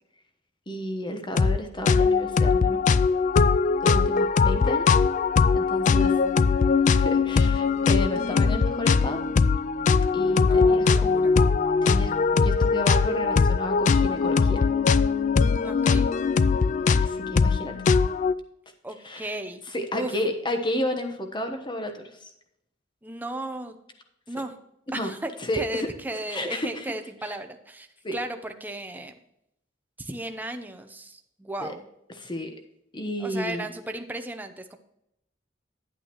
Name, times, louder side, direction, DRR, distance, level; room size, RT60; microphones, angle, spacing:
voice 1, 0.7-3.0 3.8-4.9 5.5-6.1 6.9-9.2 10.1-11.2 11.8-12.1 12.4-14.6 17.0-17.7 19.0-19.3 19.7-22.3 24.9-25.1 25.5-25.9 26.3-26.9 28.0-28.2 31.6-31.7 32.2-32.5 32.9-33.6, equal, 25° left, 5 dB, 1.2 m, -31 dB
sound 1, 1.4-1.6 1.9-18.3, left 5 dB, 40° left, 0.3 m, -21 dB
voice 2, 10.3-11.3 15.6-16.1 18.8-19.6 19.9-20.2 23.0-23.8 24.3-24.6 24.9-29.1 30.0-31.8 33.2-34.8, right 1 dB, 10° right, 6 dB, 0.7 m, -35 dB
10.5 x 9.0 x 3.1 m, 0.80 s
head